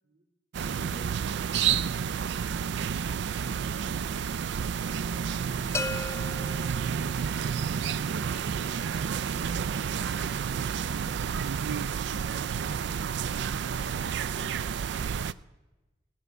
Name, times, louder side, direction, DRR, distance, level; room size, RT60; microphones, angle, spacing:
voice 1, 0.0-0.3, right 1 dB, 80° right, 2 dB, 2.1 m, -56 dB
sound 1, 0.5-15.3, right 7 dB, 65° right, 0.3 m, -30 dB
voice 2, 0.7-0.8, equal, 15° right, 3 dB, 1.3 m, -54 dB
sound 2, 5.7-7.6, left 3 dB, 15° left, 0.4 m, -36 dB
18.0 x 8.1 x 6.6 m, 1.1 s
head